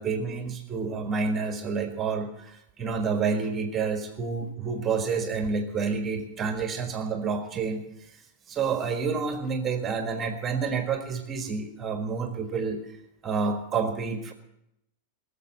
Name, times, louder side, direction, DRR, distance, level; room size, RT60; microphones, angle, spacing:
voice 1, 0.0-8.2 8.5-14.3, right 5 dB, 25° right, 6 dB, 1.6 m, -29 dB
19.5 x 7.4 x 7.4 m, 0.81 s
figure-of-eight pair, 90°, 0 cm